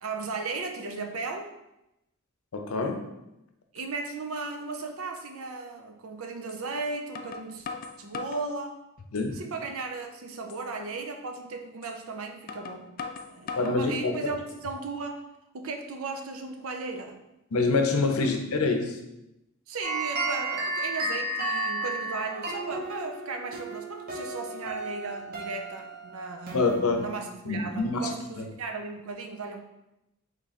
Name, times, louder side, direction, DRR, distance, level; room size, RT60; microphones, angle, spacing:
voice 1, 0.0-1.5 3.7-7.7 8.0-8.8 9.3-12.9 13.3-15.2 15.5-17.2 18.1-18.3 18.6-18.7 19.7-26.7 27.0-29.6, right 3 dB, 75° right, 4 dB, 0.6 m, -36 dB
voice 2, 2.5-3.0 9.1-9.4 13.6-14.3 17.5-19.0 26.5-27.1 27.5-28.1 28.4-28.5, left 3 dB, 80° left, 4 dB, 0.6 m, -26 dB
sound 1, 4.6-4.7 5.2-5.3 6.5-6.6 7.1-8.5 9.0-9.5 9.9-10.0 10.5-10.7 11.8-12.0 12.5-13.8 14.3-14.9, left 5 dB, 40° left, 0.3 m, -40 dB
sound 2, 19.8-27.3, right 2 dB, 45° right, 1.0 m, -33 dB
3.7 x 3.3 x 4.1 m, 0.90 s
head